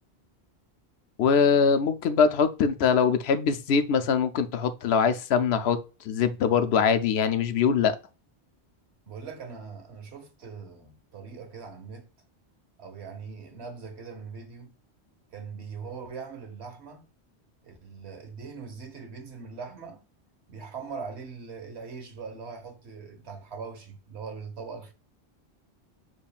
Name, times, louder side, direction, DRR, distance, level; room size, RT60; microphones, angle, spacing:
voice 1, 1.2-5.8 6.0-8.0, left 6 dB, 75° left, 0.8 m, -23 dB
voice 2, 9.1-12.1 12.8-14.7 15.3-17.1 17.6-20.0 20.5-24.9, right 5 dB, 75° right, 1.3 m, -41 dB
6.9 x 3.1 x 2.3 m
omnidirectional pair, 1.1 m